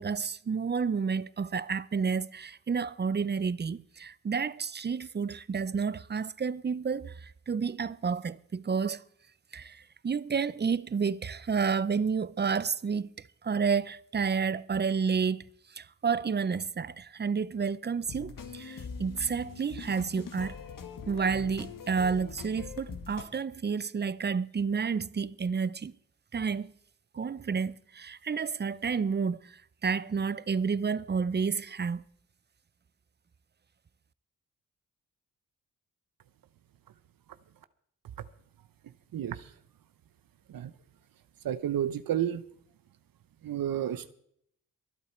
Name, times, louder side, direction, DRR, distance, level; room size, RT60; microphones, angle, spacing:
voice 1, 0.0-9.0 9.5-13.1 13.4-15.4 15.7-20.6 21.1-25.9 26.3-26.7 27.1-32.0, right 5 dB, 30° right, 0.6 m, -30 dB
sound 1, 18.1-23.2, left 5 dB, 70° left, 1.8 m, -42 dB
voice 2, 39.1-39.5 40.5-40.7 41.4-42.4 43.4-44.1, right 10 dB, 80° right, 0.8 m, -31 dB
23.0 x 8.2 x 4.4 m
cardioid pair, 60°, 34 cm